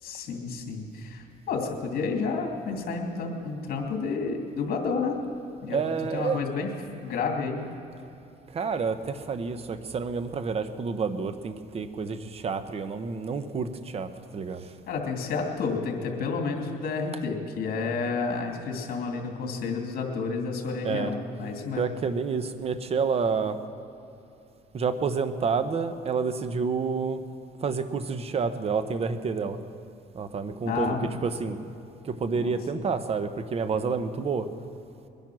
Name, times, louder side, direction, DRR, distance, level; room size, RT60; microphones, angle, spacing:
voice 1, 0.0-5.2 5.6-5.8 6.1-6.7 7.0-7.6 14.9-21.8 30.7-31.1 32.3-32.6, left 4 dB, 60° left, 2 dB, 2.6 m, -30 dB
voice 2, 5.7-6.4 8.5-14.7 20.8-23.6 24.7-27.2 27.6-29.6 30.1-31.6 32.0-34.5, right 5 dB, 35° right, 10 dB, 1.0 m, -29 dB
22.0 x 10.5 x 6.3 m, 2.8 s
cardioid pair, 110°, 17 cm